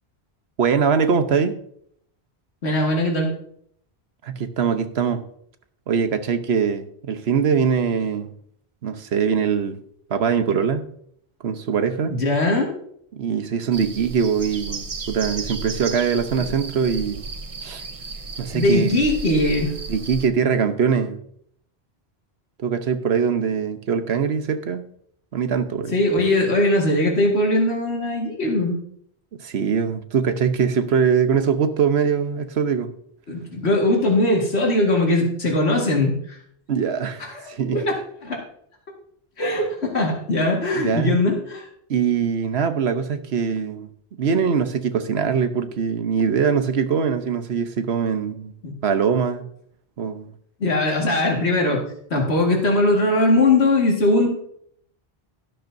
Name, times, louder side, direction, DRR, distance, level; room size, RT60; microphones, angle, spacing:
voice 1, 0.6-1.5 4.2-5.2 5.9-8.3 8.8-9.8 10.1-10.9 11.4-12.1 13.1-17.3 17.6-17.8 18.4-19.0 19.9-21.2 22.6-24.8 25.3-26.0 29.4-32.9 36.7-37.8 40.7-41.2 41.9-43.9 44.2-48.5 48.8-49.4 50.0-50.3, right 6 dB, 80° right, 9 dB, 1.2 m, -22 dB
voice 2, 2.6-3.3 12.1-12.7 16.4-16.5 18.5-19.7 25.9-28.8 33.3-36.4 37.2-38.0 38.2-38.4 39.4-41.7 48.6-48.7 50.6-51.8 52.1-54.3, left 2 dB, 85° left, -1 dB, 2.2 m, -20 dB
sound 1, 13.7-20.3, right 4 dB, 35° right, 0.7 m, -34 dB
12.0 x 12.0 x 2.7 m, 0.67 s
omnidirectional pair, 1.1 m